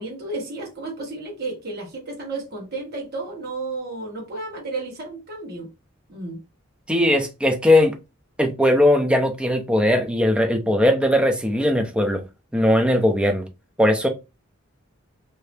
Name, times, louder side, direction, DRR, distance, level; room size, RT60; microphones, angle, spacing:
voice 1, 0.0-5.7 6.1-6.4, right 2 dB, 50° right, 1.3 m, -32 dB
voice 2, 6.9-7.9 8.4-12.2 12.5-13.5 13.8-14.1, left 1 dB, 5° right, 0.5 m, -19 dB
2.8 x 2.7 x 3.3 m
head